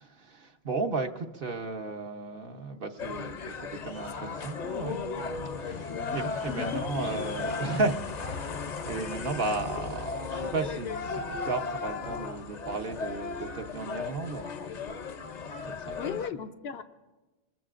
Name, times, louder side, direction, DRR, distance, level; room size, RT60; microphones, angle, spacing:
voice 1, 0.0-5.0 5.6-14.5 15.8-16.2, right 3 dB, 65° right, 4 dB, 1.1 m, -34 dB
sound 1, 3.0-16.3, left 4 dB, 50° left, 0.7 m, -36 dB
voice 2, 6.5-7.1 16.0-16.8, left 7 dB, 80° left, 9 dB, 0.9 m, -37 dB
26.0 x 21.5 x 2.5 m, 1.2 s
omnidirectional pair, 1.1 m